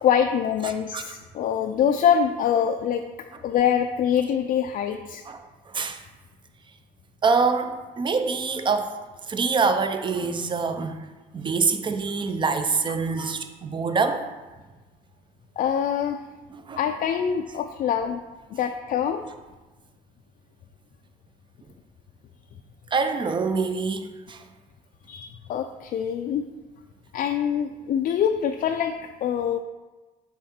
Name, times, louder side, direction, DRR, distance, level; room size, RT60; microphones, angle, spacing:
voice 1, 0.0-3.0 3.4-5.2 15.6-16.2 16.8-18.2 18.5-19.2 25.1-26.4 27.1-28.9 29.2-29.6, left 8 dB, 50° left, 5 dB, 0.4 m, -24 dB
voice 2, 5.7-6.0 7.2-8.9 9.3-11.0 11.3-14.3 16.5-16.8 22.9-24.4, right 4 dB, 30° right, 8 dB, 0.6 m, -25 dB
7.1 x 3.7 x 4.3 m, 1.2 s
cardioid pair, 110°, 17 cm